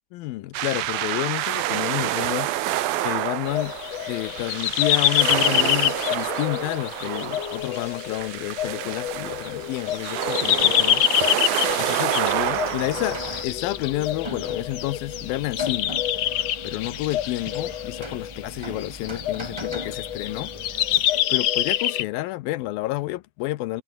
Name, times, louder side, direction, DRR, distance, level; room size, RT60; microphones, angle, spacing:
voice 1, 0.1-3.8 4.1-11.0 11.8-16.0 16.6-20.5 21.3-23.8, left 17 dB, 85° left, 2.6 m, -30 dB
sound 1, 0.5-13.4, right 14 dB, 85° right, 3.0 m, -28 dB
sound 2, 3.5-22.0, left 12 dB, 65° left, 1.8 m, -26 dB
Rain, 12.2-21.5, right 1 dB, 5° right, 3.4 m, -40 dB
omnidirectional pair, 4.1 m